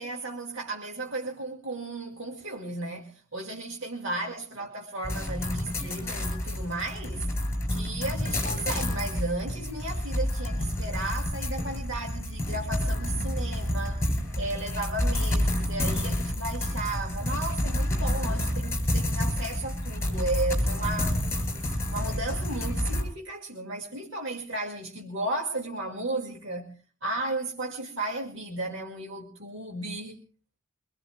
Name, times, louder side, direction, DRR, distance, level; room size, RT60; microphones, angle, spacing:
voice 1, 0.0-7.4 7.7-14.1 14.4-21.2 21.9-26.7 27.0-30.1, right 2 dB, 60° right, 2.3 m, -34 dB
sound 1, 5.0-23.0, left 1 dB, 10° left, 6.5 m, -29 dB
24.5 x 22.0 x 2.4 m
head